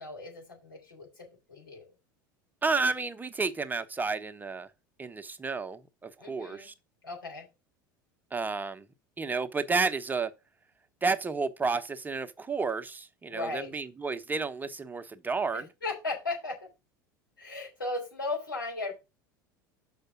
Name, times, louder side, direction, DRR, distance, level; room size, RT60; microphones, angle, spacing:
voice 1, 0.0-1.9 6.2-6.7 7.0-7.5 13.3-13.8 15.5-16.6 17.4-18.9, left 3 dB, 90° left, 3.6 m, -36 dB
voice 2, 2.6-4.7 5.0-6.7 8.3-8.9 9.2-10.3 11.0-15.7, right 4 dB, 15° right, 0.8 m, -31 dB
6.6 x 5.0 x 5.9 m
hypercardioid pair, 75°, 11 cm